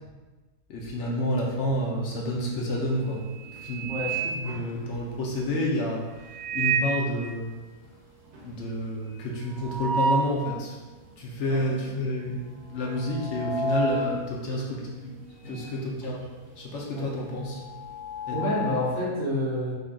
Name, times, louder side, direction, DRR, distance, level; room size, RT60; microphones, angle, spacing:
voice 1, 0.7-7.5 8.4-10.8 11.2-15.2 15.4-16.2 16.6-17.6 18.3-18.4, left 1 dB, 65° left, -2 dB, 0.7 m, -30 dB
sound 1, 2.4-2.7 3.1-5.2 6.2-7.1 7.5-7.6 7.9-8.0 8.3-10.5 11.0-11.1 11.9-12.2 12.4-15.8 16.0-19.0, right 3 dB, 80° right, 1.2 m, -31 dB
voice 2, 18.3-19.7, left 1 dB, 40° right, -9 dB, 0.7 m, -28 dB
3.7 x 2.4 x 3.5 m, 1.2 s
omnidirectional pair, 1.7 m